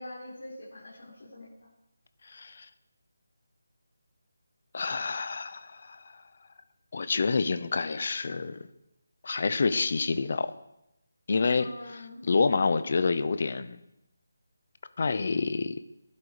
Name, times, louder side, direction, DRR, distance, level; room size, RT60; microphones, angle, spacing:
voice 1, 0.0-1.5 11.5-12.2, left 1 dB, 55° left, -6 dB, 4.9 m, -44 dB
voice 2, 2.3-2.7 4.7-6.0 6.9-8.7 9.2-10.5 11.3-13.8 15.0-15.8, left 4 dB, 35° left, 13 dB, 0.9 m, -28 dB
20.0 x 11.5 x 5.0 m, 0.85 s
figure-of-eight pair, 180°, 0 cm